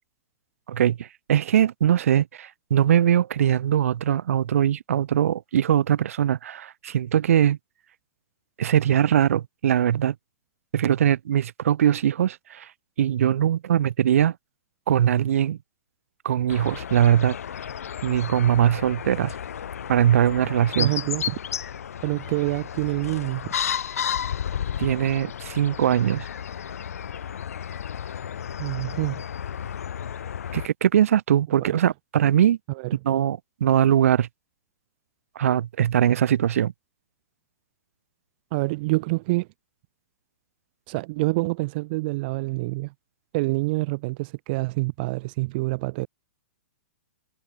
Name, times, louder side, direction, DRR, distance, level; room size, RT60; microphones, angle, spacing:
voice 1, 0.7-7.6 8.6-10.1 10.7-12.7 13.0-14.3 14.9-15.6 16.2-17.3 18.0-19.3 19.9-20.9 24.8-26.2 30.5-32.6 33.0-34.3 35.3-36.7, right 10 dB, 70° right, 3.0 m, -21 dB
sound 1, 16.5-30.7, left 8 dB, 80° left, 2.2 m, -33 dB
voice 2, 20.8-21.4 22.0-23.5 28.6-29.2 31.6-31.7 32.7-32.9 38.5-39.5 40.9-42.9 43.3-46.1, right 23 dB, 45° right, 0.8 m, -26 dB
hypercardioid pair, 140°, 8 cm